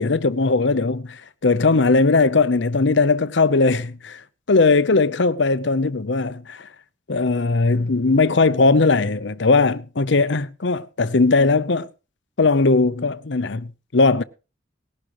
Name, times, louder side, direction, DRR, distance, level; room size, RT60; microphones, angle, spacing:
voice 1, 0.0-4.2 4.5-6.7 7.1-11.9 12.4-14.2, left 3 dB, 60° left, 0.7 m, -19 dB
19.0 x 11.5 x 3.1 m
head